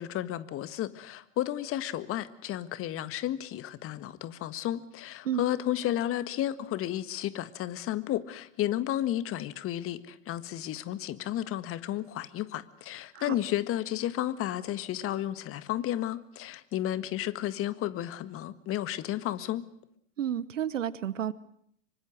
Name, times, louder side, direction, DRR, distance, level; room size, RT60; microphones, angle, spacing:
voice 1, 0.0-19.6, left 13 dB, 35° left, 13 dB, 1.7 m, -32 dB
voice 2, 20.2-21.3, right 10 dB, 75° right, 19 dB, 1.0 m, -31 dB
25.5 x 24.5 x 6.5 m, 0.69 s
figure-of-eight pair, 90°, 38 cm